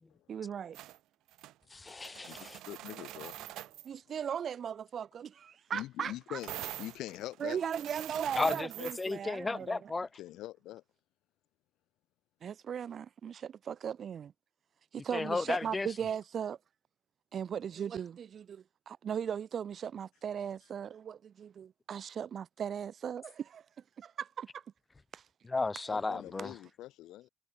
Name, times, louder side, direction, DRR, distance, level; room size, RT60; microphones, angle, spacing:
voice 1, 0.3-0.8 3.8-6.4 7.4-9.8 12.4-14.3 14.9-16.6 17.3-23.6 24.0-24.6 25.1-25.2, right 8 dB, 50° right, 1.0 m, -38 dB
sound 1, 0.7-1.0 1.3-1.5 1.9-3.9 6.4-9.1, right 15 dB, 85° right, 2.4 m, -44 dB
voice 2, 1.7-2.6 8.4-10.1 15.1-15.9 25.4-26.6, left 3 dB, 20° left, 2.2 m, -34 dB
voice 3, 2.2-3.5 4.1-4.2 5.7-7.6 10.2-10.8 15.2-15.4 25.9-27.3, left 15 dB, 85° left, 1.5 m, -44 dB
cardioid pair, 125°, 0 cm